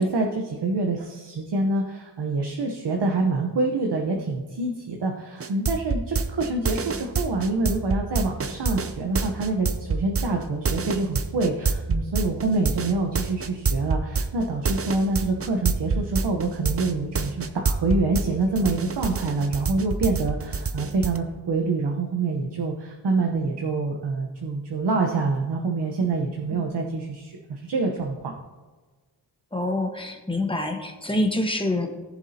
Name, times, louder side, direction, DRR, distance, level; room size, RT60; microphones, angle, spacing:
voice 1, 0.0-28.3, right 3 dB, 65° right, 2 dB, 1.1 m, -26 dB
sound 1, 5.4-18.3 18.5-21.2, right 4 dB, 30° right, 0.6 m, -26 dB
voice 2, 29.5-31.9, left 1 dB, 10° left, 4 dB, 1.3 m, -26 dB
18.5 x 7.2 x 2.8 m, 1.3 s
wide cardioid pair, 100°, 44 cm